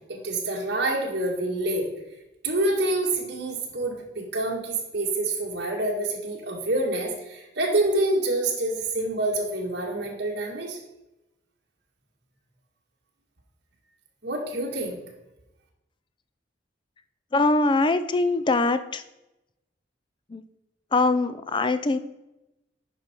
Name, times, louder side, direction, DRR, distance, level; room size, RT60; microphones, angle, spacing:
voice 1, 0.0-1.9 2.4-10.8 14.2-15.0, right 2 dB, 60° right, -2 dB, 1.8 m, -27 dB
voice 2, 17.3-19.0 20.3-20.4 20.9-22.0, left 3 dB, 25° left, 12 dB, 0.4 m, -22 dB
9.4 x 5.6 x 4.5 m, 0.94 s
head